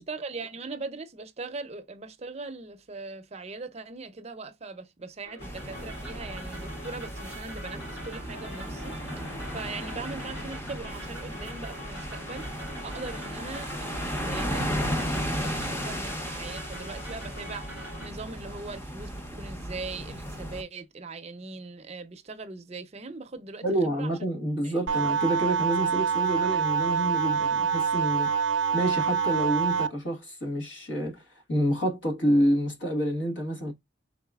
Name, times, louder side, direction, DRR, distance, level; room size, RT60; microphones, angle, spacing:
voice 1, 0.0-24.1 24.6-24.9, right 3 dB, 35° right, 0.6 m, -40 dB
sound 1, 5.2-18.1, equal, 85° left, 3.1 m, -44 dB
sound 2, 5.4-20.6, equal, 15° left, 0.7 m, -35 dB
voice 2, 23.6-28.3 28.7-31.2 31.5-33.7, equal, 70° left, 1.4 m, -28 dB
sound 3, 24.9-29.9, right 6 dB, 85° right, 0.5 m, -26 dB
4.7 x 3.7 x 2.3 m
head